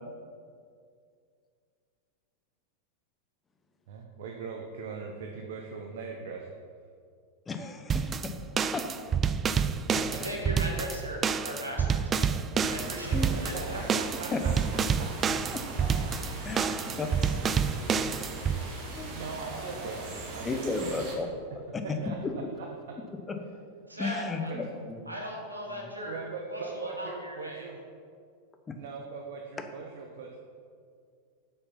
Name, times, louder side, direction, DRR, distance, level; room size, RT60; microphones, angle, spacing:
voice 1, 3.9-6.5 13.3-14.5 14.9-15.1 19.1-21.2 22.0-22.7 24.5-24.6 26.0-27.8 28.7-30.4, right 5 dB, 55° right, 2 dB, 0.8 m, -40 dB
voice 2, 7.5-8.3 8.7-8.8 10.2-10.3 13.1-13.3 14.3-14.4 16.4-17.1 19.0-19.1 20.4-21.3 21.5-22.0 22.2-22.3 23.3-23.4 24.0-25.0 28.7-28.8, left 4 dB, 15° left, 6 dB, 0.8 m, -34 dB
sound 1, 7.9-18.6, right 6 dB, 25° right, 0.3 m, -28 dB
voice 3, 10.1-12.3 12.5-13.9 23.9-24.5 25.0-27.7, equal, 85° right, -1 dB, 1.7 m, -38 dB
sound 2, 12.6-21.2, right 2 dB, 40° right, 1.6 m, -40 dB
8.2 x 5.6 x 5.7 m, 2.3 s
figure-of-eight pair, 90°, 0 cm